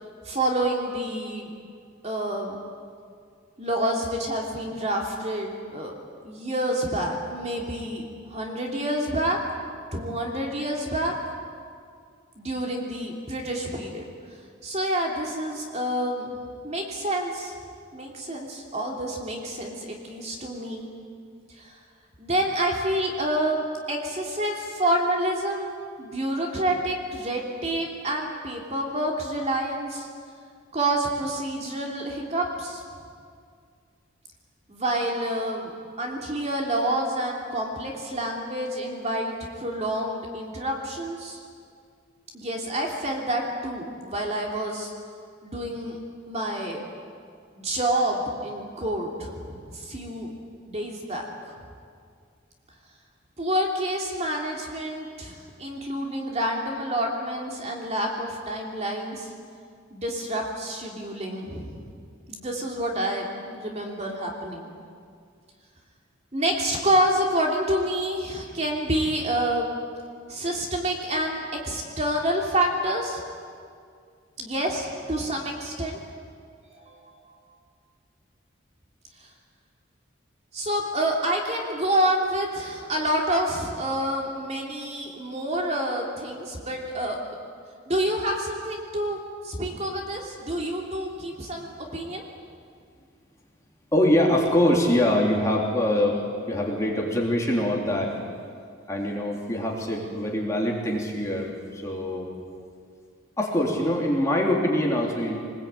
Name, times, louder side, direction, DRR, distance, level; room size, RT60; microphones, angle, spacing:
voice 1, 0.2-1.5 2.0-2.6 3.6-5.9 6.2-9.4 9.9-11.1 12.4-14.0 14.6-16.4 16.6-17.5 17.9-20.9 21.5-21.7 22.2-30.1 30.7-32.8 34.7-35.7 36.0-41.4 42.3-44.9 45.4-46.0 46.3-46.8 47.5-50.3 50.7-51.2 53.4-59.3 59.9-61.9 62.3-64.7 66.3-69.7 70.3-73.2 74.4-76.0 76.7-77.4 79.2-79.3 80.5-87.4 87.9-92.2, right 1 dB, 35° right, 0 dB, 3.0 m, -28 dB
voice 2, 93.9-96.2 96.5-98.1 98.9-102.3 103.4-105.4, left 1 dB, 15° left, -2 dB, 3.5 m, -24 dB
24.0 x 20.5 x 8.9 m, 2.2 s
head